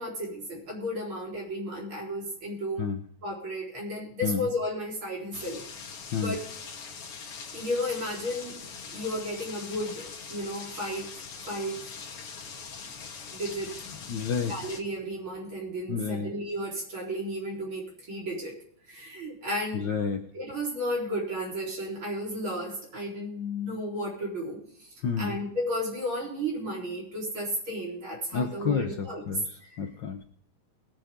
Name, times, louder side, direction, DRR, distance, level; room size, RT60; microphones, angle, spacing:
voice 1, 0.0-2.9 3.2-5.6 6.2-6.4 7.5-8.6 8.9-11.2 11.5-11.8 13.3-13.8 14.5-18.6 18.9-19.9 20.3-29.2 29.6-29.8, equal, 45° right, -3 dB, 4.9 m, -33 dB
sound 1, 5.3-14.8, left 5 dB, 55° left, 2.4 m, -42 dB
voice 2, 14.1-14.6 15.9-16.3 19.7-20.3 25.0-25.4 28.3-30.2, left 6 dB, 90° left, 5 dB, 1.0 m, -30 dB
22.0 x 7.5 x 3.7 m, 0.64 s
omnidirectional pair, 3.3 m